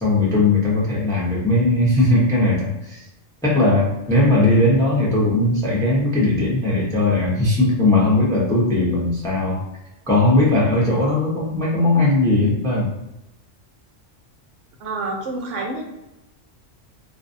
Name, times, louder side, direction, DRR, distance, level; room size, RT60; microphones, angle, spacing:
voice 1, 0.0-3.0 3.4-9.6 10.1-12.9, left 2 dB, 5° left, -5 dB, 0.5 m, -18 dB
voice 2, 14.8-15.8, right 2 dB, 75° right, 0 dB, 0.9 m, -28 dB
2.5 x 2.3 x 2.5 m, 0.93 s
omnidirectional pair, 1.3 m